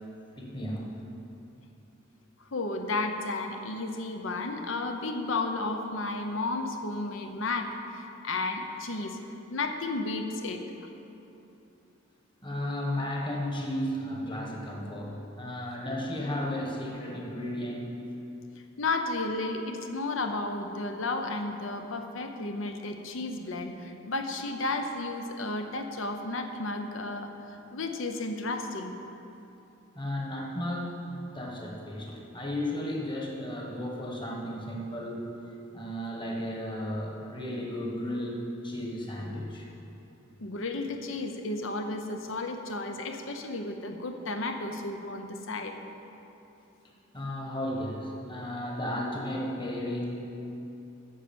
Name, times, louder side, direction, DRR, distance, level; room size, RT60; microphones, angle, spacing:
voice 1, 0.4-0.9 8.1-8.2 12.4-18.0 29.9-31.0 31.3-35.4 35.7-39.7 47.1-50.3, left 1 dB, 25° left, -1 dB, 1.3 m, -34 dB
voice 2, 2.5-9.2 9.5-10.6 18.8-27.3 27.7-28.9 40.4-45.8, left 2 dB, 70° left, 5 dB, 0.8 m, -33 dB
9.8 x 6.3 x 7.0 m, 2.9 s
head